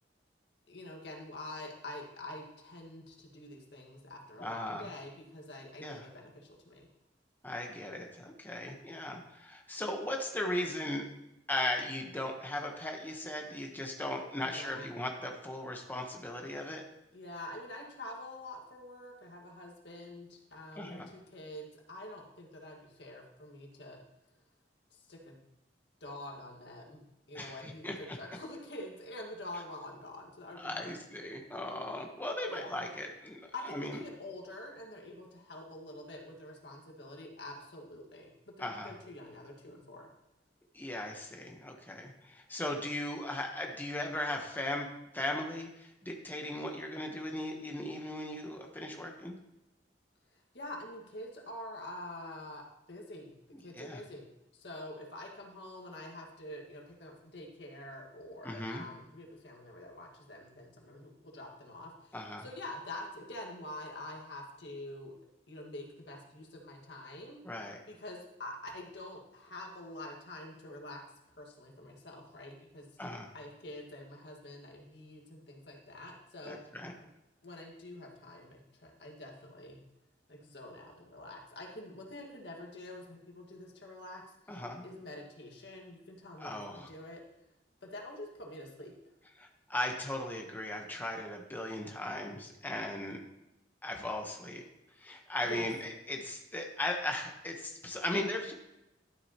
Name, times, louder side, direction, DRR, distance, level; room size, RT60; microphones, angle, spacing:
voice 1, 0.7-6.9 14.4-14.9 17.1-24.0 24.9-25.4 26.0-27.0 27.3-30.9 32.5-32.7 33.5-40.1 50.3-65.1 65.5-67.4 67.9-71.0 71.4-72.9 73.3-76.6 77.0-77.1 77.4-79.8 80.3-87.2 87.8-89.0 95.4-95.7, left 1 dB, 80° left, 1 dB, 1.8 m, -46 dB
voice 2, 4.4-4.9 5.8-6.1 7.4-11.1 11.5-16.9 20.7-21.1 27.3-28.2 30.6-33.4 33.7-34.0 38.6-38.9 40.7-44.9 45.1-49.4 53.5-54.0 58.4-58.8 62.1-62.4 67.4-67.8 73.0-73.3 76.5-76.9 84.5-84.8 86.4-86.9 89.4-93.2 93.8-94.6 95.0-98.5, left 1 dB, 10° left, 2 dB, 1.0 m, -37 dB
12.5 x 7.6 x 2.9 m, 0.90 s
head